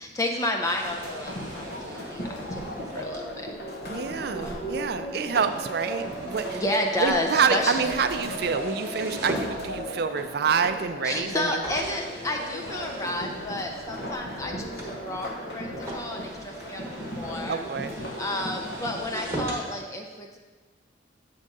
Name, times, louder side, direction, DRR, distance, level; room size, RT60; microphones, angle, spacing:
voice 1, 0.0-3.5 4.4-4.7 5.1-5.2 6.5-7.8 11.0-17.6 18.2-20.4, left 1 dB, 15° left, 2 dB, 0.4 m, -31 dB
sound 1, 0.6-10.1 10.8-10.9 11.6-19.7, right 2 dB, 15° right, 1.0 m, -40 dB
sound 2, 0.8-19.5, equal, 55° left, 0.8 m, -37 dB
voice 2, 3.9-6.6 7.0-11.6 17.5-17.9, right 6 dB, 55° right, 9 dB, 0.4 m, -27 dB
7.8 x 3.6 x 5.2 m, 1.3 s
head